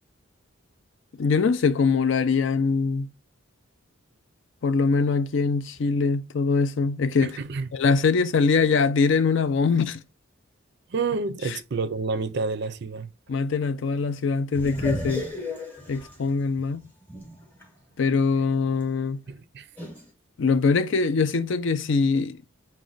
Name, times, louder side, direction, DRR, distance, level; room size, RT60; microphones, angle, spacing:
voice 1, 1.2-3.1 4.6-7.3 7.7-10.0 11.5-11.6 13.3-15.3 15.9-16.8 18.0-19.2 20.4-22.4, left 4 dB, 60° left, 0.4 m, -23 dB
voice 2, 7.2-7.7 10.9-13.1 19.3-19.7, right 4 dB, 50° right, 0.4 m, -29 dB
sound 1, 14.5-17.6 18.1-18.2 19.8-20.1, left 1 dB, 10° left, 0.8 m, -34 dB
5.9 x 2.2 x 3.8 m
head